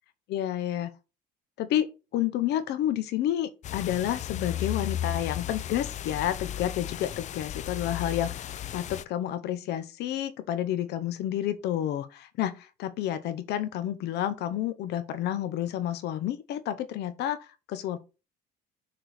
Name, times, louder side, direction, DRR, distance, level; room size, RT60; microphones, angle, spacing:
voice 1, 0.3-0.9 1.6-18.0, left 11 dB, 80° left, 0.9 m, -30 dB
sound 1, 3.6-9.0, left 11 dB, 45° left, 0.4 m, -35 dB
6.1 x 4.4 x 6.5 m
cardioid pair, 110°, 17 cm